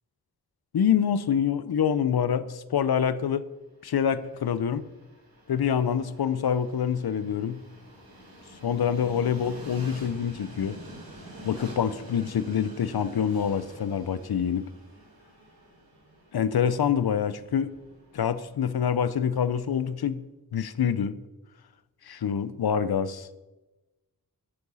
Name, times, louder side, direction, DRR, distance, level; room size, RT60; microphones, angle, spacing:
voice 1, 0.7-3.5 3.8-4.9 5.5-7.6 8.6-10.8 11.4-14.7 16.3-17.7 18.1-20.3 20.5-21.2 22.0-23.3, left 8 dB, 80° left, 15 dB, 0.6 m, -26 dB
Train, 3.8-19.9, equal, 70° right, 3.9 m, -48 dB
8.7 x 8.6 x 5.5 m, 1.1 s
wide cardioid pair, 80°, 37 cm